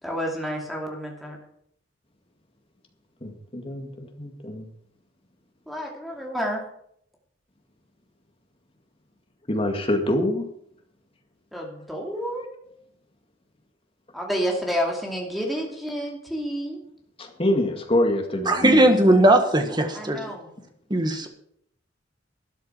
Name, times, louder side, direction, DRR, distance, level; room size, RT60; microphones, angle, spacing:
voice 1, 0.0-1.4 5.7-6.6 11.5-12.4 14.1-16.8 19.9-20.5, equal, ahead, 0 dB, 2.7 m, -29 dB
voice 2, 3.2-4.7 6.4-6.5 9.5-10.4 11.8-11.9 17.2-19.2, left 1 dB, 30° left, 3 dB, 2.1 m, -26 dB
voice 3, 18.5-20.2 20.9-21.3, right 1 dB, 25° right, 6 dB, 1.6 m, -18 dB
12.5 x 10.5 x 5.8 m, 0.69 s
head